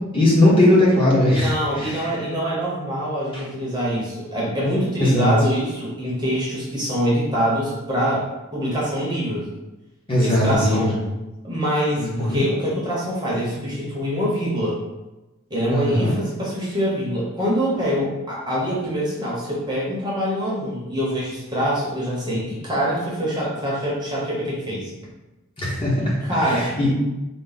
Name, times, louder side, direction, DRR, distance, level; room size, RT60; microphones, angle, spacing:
voice 1, 0.1-2.2 3.3-3.4 5.0-5.3 10.1-11.0 12.0-12.4 15.7-16.2 25.6-26.1 26.4-26.9, left 1 dB, 25° left, -6 dB, 1.0 m, -19 dB
voice 2, 1.3-8.3 8.5-9.4 10.2-11.0 11.4-14.8 15.5-24.9 26.0-26.7, equal, 20° right, -6 dB, 0.8 m, -24 dB
4.1 x 2.1 x 3.9 m, 1.0 s
head